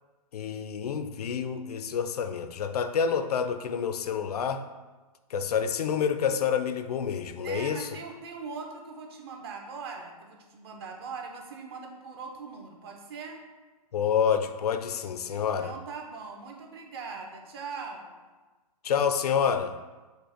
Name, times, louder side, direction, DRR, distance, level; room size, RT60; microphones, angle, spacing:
voice 1, 0.3-4.6 5.3-7.9 13.9-15.7 18.8-19.8, left 7 dB, 75° left, 9 dB, 0.5 m, -28 dB
voice 2, 7.4-13.4 15.3-18.1, right 4 dB, 40° right, 2 dB, 0.6 m, -41 dB
5.2 x 2.1 x 4.9 m, 1.2 s
hypercardioid pair, 145°, 20 cm